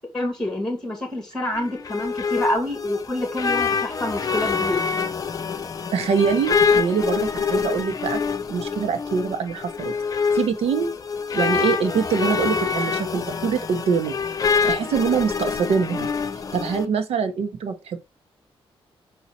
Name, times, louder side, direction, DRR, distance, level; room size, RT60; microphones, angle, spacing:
voice 1, 0.1-4.8, left 1 dB, 5° left, 2.4 m, -27 dB
sound 1, 1.5-16.8, left 5 dB, 35° left, 0.6 m, -25 dB
voice 2, 5.9-8.2 8.5-9.9 10.3-10.9 11.3-14.2 14.7-16.1 16.5-18.0, right 6 dB, 85° right, 0.9 m, -24 dB
5.5 x 4.2 x 4.2 m
wide cardioid pair, 130°, 10 cm